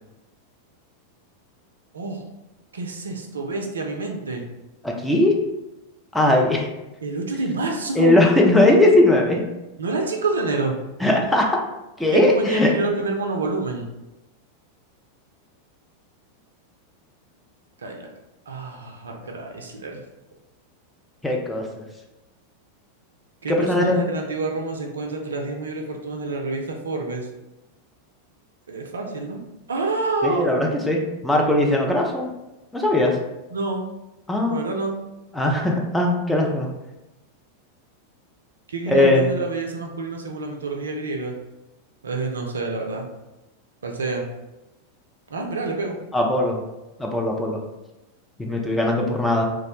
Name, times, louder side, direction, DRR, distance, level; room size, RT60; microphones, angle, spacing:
voice 1, 2.7-4.4 7.0-8.2 9.8-10.8 12.1-13.9 17.8-18.1 18.5-20.0 23.4-27.3 28.7-29.4 29.7-30.5 33.5-33.8 34.5-35.0 38.7-41.3 42.0-43.1 43.8-44.2 45.3-46.0, right 3 dB, 70° right, 2 dB, 0.3 m, -28 dB
voice 2, 4.8-5.3 6.1-6.6 8.0-9.4 11.0-11.6 12.0-12.7 21.2-21.6 23.5-24.0 30.2-32.3 32.7-33.2 34.3-34.6 35.3-36.7 38.9-39.3 46.1-46.6 47.0-47.6 48.4-49.5, left 1 dB, 5° left, -1 dB, 0.4 m, -19 dB
2.2 x 2.0 x 2.9 m, 0.98 s
figure-of-eight pair, 90°, 0 cm